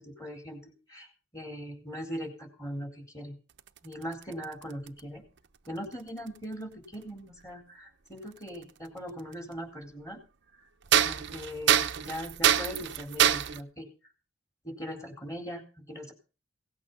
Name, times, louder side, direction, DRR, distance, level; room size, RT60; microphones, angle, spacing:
voice 1, 0.0-3.4 3.8-5.2 5.7-10.2 11.0-13.9 14.6-16.1, equal, 15° left, 3 dB, 4.2 m, -40 dB
sound 1, 3.6-5.0 6.3-6.4 8.5-8.6 9.3-9.4 10.9-13.6, right 9 dB, 60° right, 0.8 m, -25 dB
17.5 x 8.5 x 5.6 m, 0.36 s
head